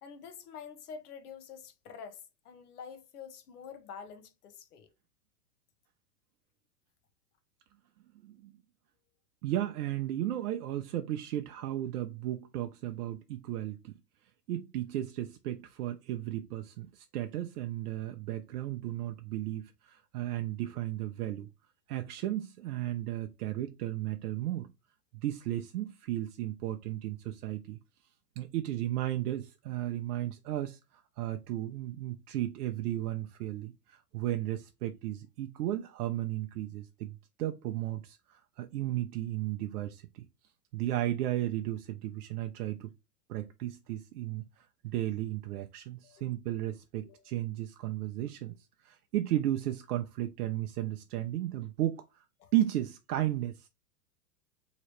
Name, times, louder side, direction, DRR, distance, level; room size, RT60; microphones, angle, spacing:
voice 1, 0.0-4.9 46.0-46.3 47.0-47.2 52.4-52.5, left 6 dB, 75° left, 1.0 m, -47 dB
voice 2, 8.2-8.6 9.4-13.9 14.5-21.5 21.9-24.7 25.1-27.8 28.4-40.2 40.7-42.9 43.3-48.5 48.8-52.0 52.5-53.7, right 13 dB, 70° right, 0.6 m, -34 dB
3.1 x 2.8 x 3.0 m
hypercardioid pair, 130°, 47 cm